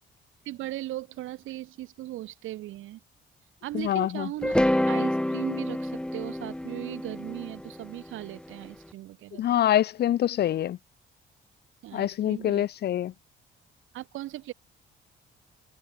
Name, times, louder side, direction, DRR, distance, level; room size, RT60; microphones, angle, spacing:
voice 1, 0.5-3.0 3.6-9.6 11.8-12.7 13.9-14.5, right 15 dB, 85° right, 2.2 m, -38 dB
voice 2, 3.7-4.3 9.4-10.8 11.9-13.1, left 11 dB, 55° left, 0.5 m, -25 dB
sound 1, 4.4-8.6, left 1 dB, 5° left, 0.9 m, -28 dB
cardioid pair, 90°, 20 cm